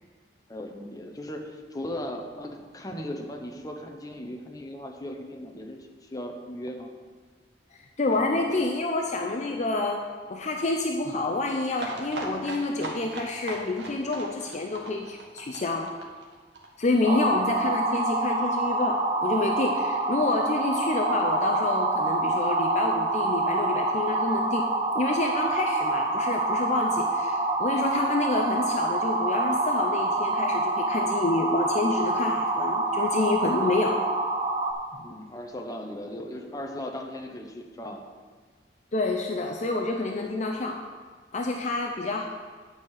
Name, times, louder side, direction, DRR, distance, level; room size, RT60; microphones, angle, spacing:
voice 1, 0.5-6.9 8.1-8.6 17.0-17.2 35.0-38.0, left 1 dB, 20° left, 2 dB, 0.9 m, -37 dB
voice 2, 8.0-16.0 16.8-24.7 24.9-34.0 38.9-40.8 41.3-42.3, left 2 dB, 40° left, 2 dB, 0.6 m, -28 dB
sound 1, 11.8-17.3 17.6-17.7 17.9-18.0 18.2-18.3, right 2 dB, 85° right, 1.6 m, -38 dB
sound 2, 17.0-34.7, right 2 dB, 30° right, 1.0 m, -26 dB
9.2 x 5.6 x 6.5 m, 1.5 s
head